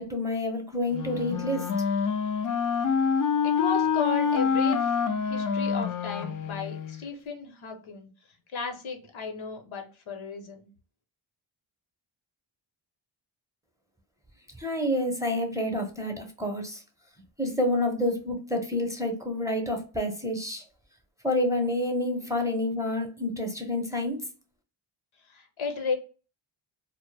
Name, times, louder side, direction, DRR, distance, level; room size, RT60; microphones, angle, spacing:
voice 1, 0.0-1.7 14.6-16.8 17.4-20.6 21.2-24.2, left 1 dB, 5° right, 3 dB, 0.7 m, -28 dB
Wind instrument woodwind instrument, 0.9-7.0, left 6 dB, 45° left, 0.4 m, -26 dB
voice 2, 3.4-5.0 5.3-8.1 8.5-10.7 25.3-25.9, left 4 dB, 75° left, 4 dB, 0.8 m, -34 dB
2.1 x 2.1 x 3.2 m, 0.36 s
cardioid pair, 60°, 49 cm